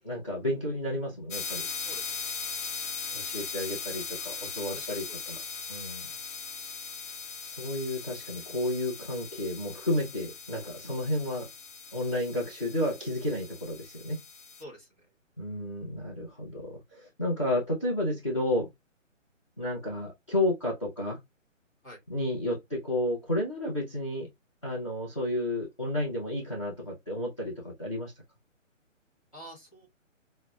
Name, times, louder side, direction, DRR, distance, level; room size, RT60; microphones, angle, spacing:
voice 1, 0.0-1.7 3.1-5.4 5.7-6.1 7.4-11.5 11.9-14.2 15.4-18.7 19.6-21.2 22.1-24.3 24.6-28.1, left 1 dB, 25° left, 0.5 m, -31 dB
sound 1, 1.3-14.6, left 5 dB, 65° left, 0.6 m, -39 dB
voice 2, 1.8-2.3 4.4-5.3 10.7-10.9 14.6-15.1 21.8-22.0 29.3-29.9, equal, 10° left, 1.1 m, -48 dB
5.6 x 2.0 x 2.2 m
hypercardioid pair, 170°, 39 cm